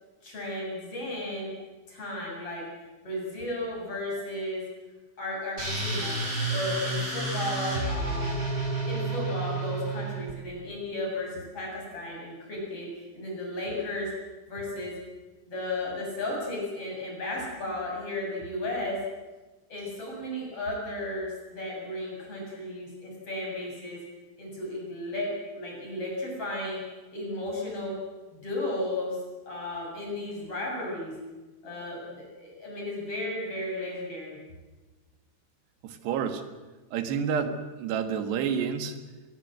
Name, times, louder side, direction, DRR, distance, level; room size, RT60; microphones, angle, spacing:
voice 1, 0.2-1.5 1.9-2.7 3.0-4.6 5.2-6.2 6.5-8.4 8.8-12.9 13.1-14.1 14.5-14.9 15.5-19.0 19.7-24.0 24.4-26.8 27.1-27.9 28.3-29.2 29.5-31.2 31.6-34.4, left 1 dB, 35° left, -2 dB, 8.4 m, -34 dB
sound 1, 5.6-10.3, right 2 dB, 15° right, 8.0 m, -30 dB
voice 2, 35.8-36.4 36.9-39.0, right 7 dB, 90° right, 8 dB, 3.9 m, -29 dB
24.0 x 21.5 x 7.8 m, 1.2 s
omnidirectional pair, 4.7 m